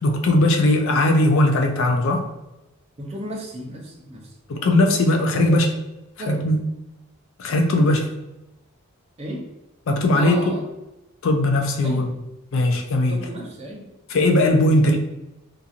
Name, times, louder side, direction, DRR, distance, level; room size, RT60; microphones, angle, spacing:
voice 1, 0.0-2.3 4.5-5.7 6.3-6.6 7.4-8.1 9.9-10.5 11.2-12.1 12.5-13.3 14.1-15.0, left 1 dB, 60° left, 3 dB, 0.4 m, -19 dB
voice 2, 3.0-4.3 5.4-5.5 6.2-6.4 9.2-9.5 10.2-10.6 11.8-12.1 13.1-13.9, right 1 dB, 30° right, -1 dB, 0.5 m, -33 dB
2.8 x 2.5 x 2.4 m, 0.96 s
head